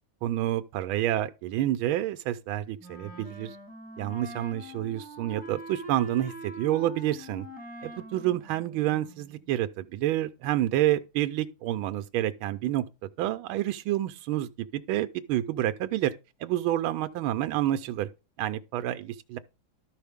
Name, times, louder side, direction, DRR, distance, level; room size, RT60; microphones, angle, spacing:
voice 1, 0.2-3.6 4.0-7.5 7.8-12.8 13.2-16.1 16.4-18.1 18.4-19.4, right 13 dB, 85° right, 1.4 m, -28 dB
Wind instrument woodwind instrument, 2.8-9.4, right 1 dB, 5° left, 1.4 m, -44 dB
12.5 x 5.5 x 3.5 m
omnidirectional pair, 2.2 m